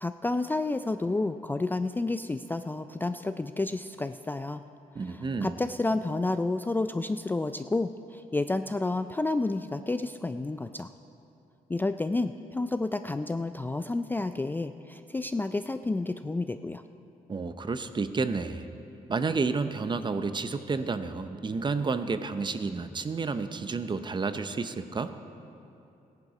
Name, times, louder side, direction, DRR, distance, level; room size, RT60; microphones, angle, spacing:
voice 1, 0.0-4.6 5.0-10.9 11.7-16.8, left 2 dB, 15° left, 9 dB, 0.3 m, -30 dB
voice 2, 4.9-5.6 17.3-18.7 19.1-25.1, right 4 dB, 30° right, 10 dB, 0.7 m, -30 dB
15.0 x 10.5 x 4.9 m, 2.8 s
cardioid pair, 90°, 15 cm